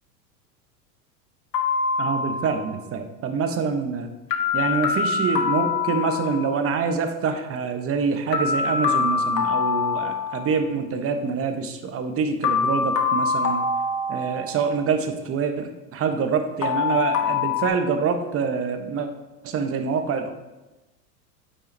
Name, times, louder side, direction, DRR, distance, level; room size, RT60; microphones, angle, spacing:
sound 1, 1.5-2.7 4.3-6.6 8.3-10.6 12.4-14.8 16.6-17.7, left 5 dB, 85° left, 1.1 m, -24 dB
voice 1, 2.0-4.1 4.5-13.6 14.1-19.1 19.4-20.3, right 5 dB, 30° right, 7 dB, 0.9 m, -26 dB
8.3 x 5.6 x 3.2 m, 1.1 s
hypercardioid pair, 95°, 47 cm